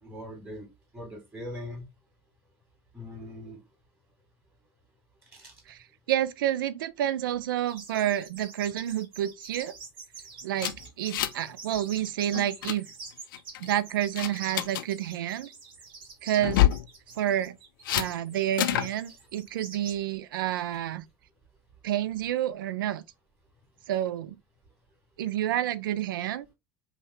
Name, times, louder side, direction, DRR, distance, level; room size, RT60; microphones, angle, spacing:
voice 1, 0.0-0.7 0.9-1.9 2.9-3.6 5.3-5.5, left 1 dB, 15° right, 2.5 m, -41 dB
voice 2, 5.7-9.7 10.4-12.9 13.6-15.5 16.2-16.6 17.2-17.6 17.9-21.0 21.8-23.0 23.9-24.4 25.2-26.5, right 11 dB, 65° right, 0.4 m, -29 dB
sound 1, 7.7-20.0, right 4 dB, 45° right, 1.2 m, -45 dB
sound 2, 10.6-11.5 11.8-12.0 12.3-12.8 13.3-13.7 14.2-14.8 16.4-16.9 17.8-18.1 18.6-18.9, left 13 dB, 65° left, 0.4 m, -26 dB
5.3 x 2.2 x 3.3 m
figure-of-eight pair, 70°, 12 cm